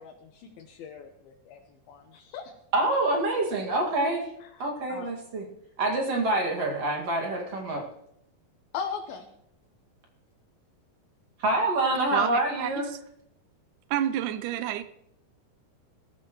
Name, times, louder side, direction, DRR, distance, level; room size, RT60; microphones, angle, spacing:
voice 1, 0.0-2.5 4.4-5.1 8.7-9.3, left 6 dB, 80° left, 2.9 m, -39 dB
voice 2, 2.7-4.3 4.6-5.4 5.8-7.8 11.4-12.9, right 2 dB, 45° right, 2.9 m, -26 dB
voice 3, 12.1-12.8 13.9-14.8, right 11 dB, 75° right, 1.9 m, -29 dB
21.5 x 14.0 x 3.1 m
omnidirectional pair, 4.3 m